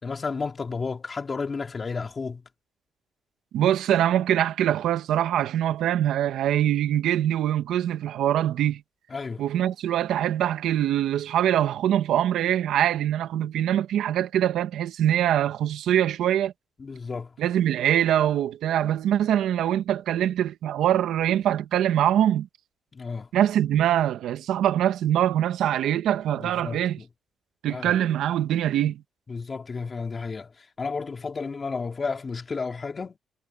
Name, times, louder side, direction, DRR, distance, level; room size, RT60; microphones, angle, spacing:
voice 1, 0.0-2.4 9.1-9.4 16.8-17.3 22.9-23.3 26.4-27.1 27.7-27.9 29.3-30.5 30.8-33.2, left 4 dB, 35° left, 3.7 m, -32 dB
voice 2, 3.5-8.8 9.4-16.5 17.4-22.5 23.3-27.0 27.6-29.0, right 11 dB, 80° right, 1.5 m, -23 dB
cardioid pair, 90°, 0 cm